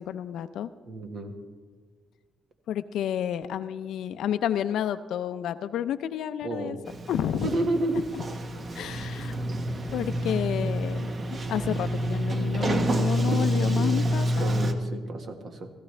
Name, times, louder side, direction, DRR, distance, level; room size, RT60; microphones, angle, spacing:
voice 1, 0.0-0.7 2.7-6.8 7.1-7.5 8.7-9.4 9.9-14.5, left 10 dB, 80° left, 11 dB, 0.4 m, -30 dB
voice 2, 0.9-1.4 6.4-6.8 7.4-8.1 14.4-15.7, right 2 dB, 55° right, 6 dB, 1.5 m, -30 dB
Sliding door, 6.9-14.7, equal, 40° right, 1.0 m, -28 dB
16.0 x 15.5 x 3.3 m, 1.5 s
cardioid pair, 90°, 0 cm